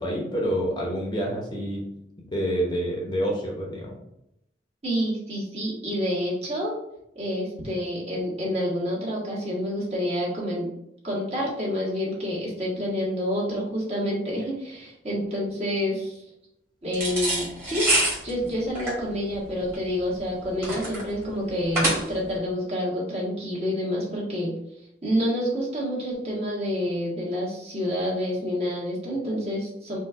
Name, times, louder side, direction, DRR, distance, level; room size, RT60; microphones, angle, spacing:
voice 1, 0.0-1.8 2.3-4.0, equal, 25° left, -2 dB, 0.8 m, -27 dB
voice 2, 4.8-6.7 7.1-10.7 11.0-16.2 16.8-17.9 18.2-24.5 25.0-30.0, equal, 35° right, -5 dB, 1.3 m, -28 dB
sound 1, 16.9-22.4, right 1 dB, 15° right, 1.3 m, -27 dB
4.3 x 2.3 x 4.4 m, 0.80 s
head